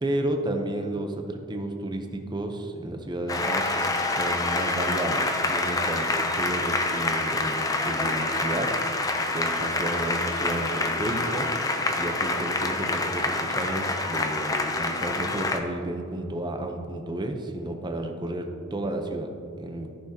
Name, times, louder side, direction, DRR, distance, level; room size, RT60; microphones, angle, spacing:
voice 1, 0.0-8.7 9.3-11.5 12.0-19.3 19.6-19.9, right 1 dB, 20° right, 4 dB, 0.8 m, -32 dB
Applause, 3.3-15.6, left 2 dB, 20° left, 0.6 m, -27 dB
14.5 x 6.1 x 2.9 m, 2.6 s
head